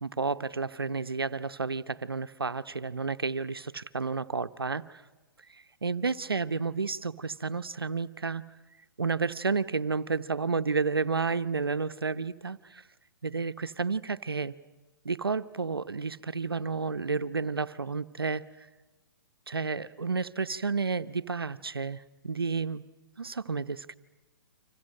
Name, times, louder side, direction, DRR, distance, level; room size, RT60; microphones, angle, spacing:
voice 1, 0.0-4.8 5.5-8.5 9.0-12.8 13.2-14.5 15.0-18.4 19.5-22.8 23.2-23.9, right 4 dB, 90° right, 12 dB, 0.8 m, -31 dB
30.0 x 26.0 x 6.6 m, 1.2 s
figure-of-eight pair, 125°, 12 cm